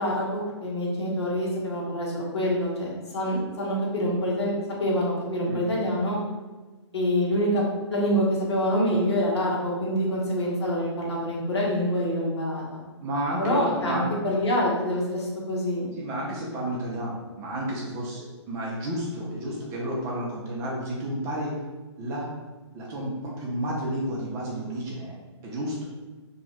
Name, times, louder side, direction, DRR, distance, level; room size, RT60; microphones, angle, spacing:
voice 1, 0.0-4.5 4.8-6.2 6.9-7.6 7.9-12.8 13.4-15.9, equal, 65° left, -4 dB, 1.2 m, -26 dB
voice 2, 13.0-14.1 15.9-21.5 22.0-22.3 22.7-25.2 25.4-25.9, right 1 dB, 20° right, -3 dB, 0.5 m, -31 dB
2.8 x 2.4 x 4.1 m, 1.2 s
hypercardioid pair, 135°, 15 cm